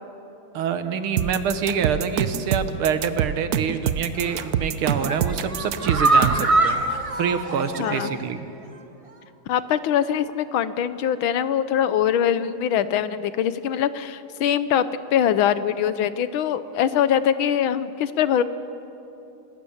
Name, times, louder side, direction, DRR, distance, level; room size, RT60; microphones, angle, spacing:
voice 1, 0.5-8.5, right 7 dB, 85° right, 9 dB, 2.1 m, -26 dB
sound 1, 1.2-6.5, right 9 dB, 60° right, 1.0 m, -25 dB
sound 2, 4.1-4.5 4.9-8.3 8.6-8.7 9.1-9.2, right 2 dB, 25° right, 0.8 m, -24 dB
voice 2, 7.8-8.1 9.5-14.9 15.1-18.4, left 9 dB, 75° left, 13 dB, 1.6 m, -22 dB
26.5 x 19.0 x 7.3 m, 2.9 s
omnidirectional pair, 2.3 m